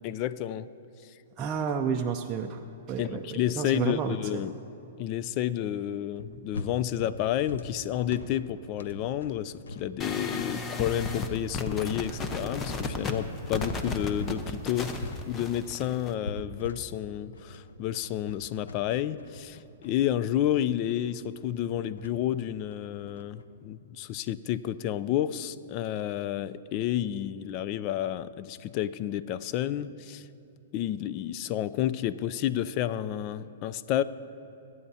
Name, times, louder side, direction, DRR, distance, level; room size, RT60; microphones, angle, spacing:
voice 1, 0.0-0.7 1.0-1.1 3.0-4.5 5.0-19.6 19.8-30.3 30.7-34.0, left 11 dB, 40° left, 15 dB, 0.4 m, -30 dB
voice 2, 1.4-2.6 2.9-4.2 4.4-4.5, right 6 dB, 25° right, 2 dB, 0.5 m, -30 dB
sound 1, 6.2-14.4 14.7-23.5, left 2 dB, 85° left, 0.7 m, -43 dB
sound 2, 10.0-16.1, left 3 dB, 20° left, 0.9 m, -34 dB
23.5 x 9.3 x 2.8 m, 2.7 s
hypercardioid pair, 130°, 0 cm